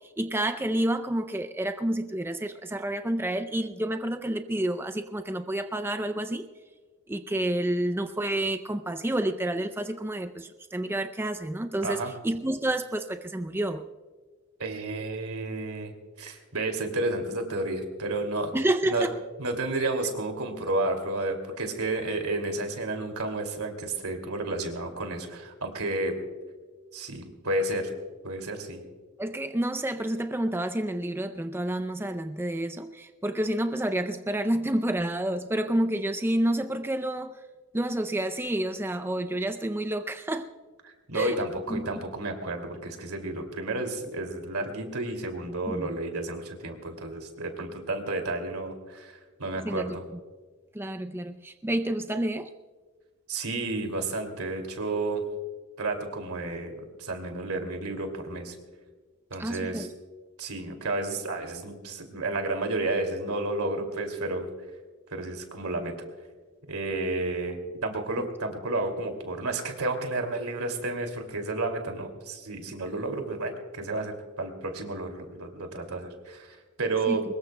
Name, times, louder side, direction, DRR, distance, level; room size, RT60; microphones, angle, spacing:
voice 1, 0.2-6.4 7.1-13.8 18.5-19.2 29.2-37.3 37.7-40.5 41.1-41.4 41.7-42.0 45.7-46.0 49.6-50.0 50.7-52.5 59.4-59.9 77.1-77.2, right 1 dB, 10° right, 8 dB, 0.4 m, -29 dB
voice 2, 14.6-15.9 16.2-18.5 18.9-19.1 19.4-26.1 26.9-27.9 28.2-28.8 40.8-50.0 53.3-55.2 55.8-58.6 59.3-59.9 60.4-64.5 65.1-65.9 66.7-77.2, right 2 dB, 85° right, 4 dB, 2.5 m, -31 dB
23.5 x 21.0 x 2.2 m, 1.4 s
head